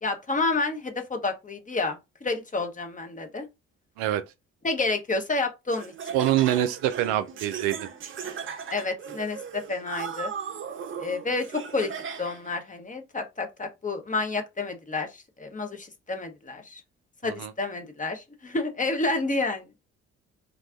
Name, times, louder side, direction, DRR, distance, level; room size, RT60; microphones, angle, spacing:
voice 1, 0.0-3.5 4.6-5.9 8.7-10.3 11.0-11.9 12.2-16.8 17.2-19.6, left 3 dB, 20° left, 0.9 m, -29 dB
Laughter, 5.7-12.5, right 7 dB, 35° right, 0.6 m, -37 dB
voice 2, 6.1-7.8 17.2-17.5, right 12 dB, 70° right, 0.5 m, -25 dB
3.5 x 2.3 x 2.4 m
hypercardioid pair, 45°, 35 cm